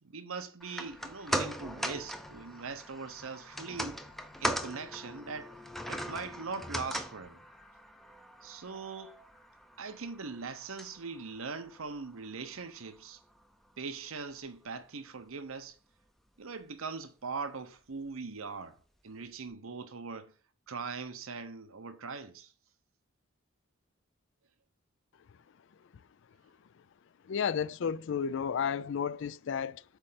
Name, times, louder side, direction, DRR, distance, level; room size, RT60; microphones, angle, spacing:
voice 1, 0.0-4.0 4.4-5.6 5.9-7.4 8.4-9.2 9.8-13.2 13.8-15.8 16.4-18.8 19.0-20.3 20.7-22.5, right 4 dB, 75° right, 0.8 m, -41 dB
sound 1, 0.6-13.0 13.3-13.4, equal, ahead, 0.5 m, -40 dB
voice 2, 27.2-29.8, left 7 dB, 60° left, 0.3 m, -32 dB
8.1 x 3.3 x 5.7 m
head